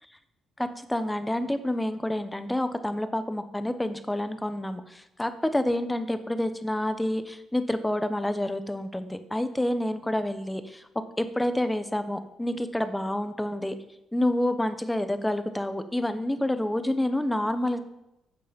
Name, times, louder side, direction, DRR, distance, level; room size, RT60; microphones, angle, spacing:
voice 1, 0.6-10.8 11.2-13.8 14.1-17.8, left 1 dB, 10° left, 10 dB, 1.1 m, -28 dB
14.5 x 6.7 x 5.3 m, 0.88 s
cardioid pair, 90°, 0 cm